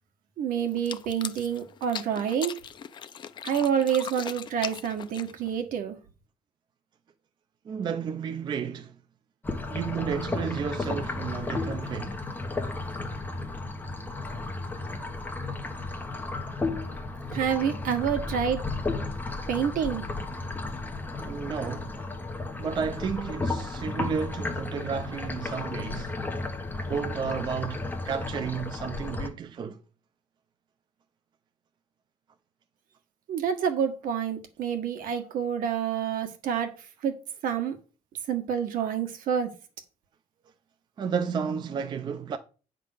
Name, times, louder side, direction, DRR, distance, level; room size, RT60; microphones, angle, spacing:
voice 1, 0.4-2.5 3.4-6.0 17.3-18.6 19.5-20.1 33.3-36.7 37.0-37.2 37.4-37.8 38.3-39.5, right 8 dB, 70° right, 1.5 m, -28 dB
sound 1, 0.7-5.6, left 8 dB, 30° left, 0.5 m, -40 dB
voice 2, 7.6-9.0 9.7-12.2 21.2-22.0 22.6-26.2 26.9-29.8 41.0-42.4, right 6 dB, 30° right, 0.5 m, -32 dB
sound 2, 9.4-29.3, left 3 dB, 10° left, 1.1 m, -33 dB
9.2 x 3.7 x 6.5 m
cardioid pair, 175°, 15 cm